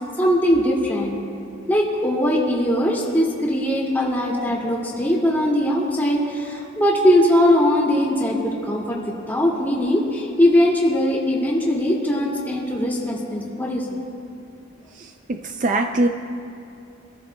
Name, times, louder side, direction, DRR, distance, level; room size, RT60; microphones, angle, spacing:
voice 1, 0.2-1.2 1.7-9.0 9.3-14.0, equal, 10° left, -4 dB, 2.3 m, -20 dB
voice 2, 15.3-16.1, right 2 dB, 40° right, 5 dB, 0.5 m, -21 dB
25.0 x 14.0 x 2.3 m, 2.7 s
head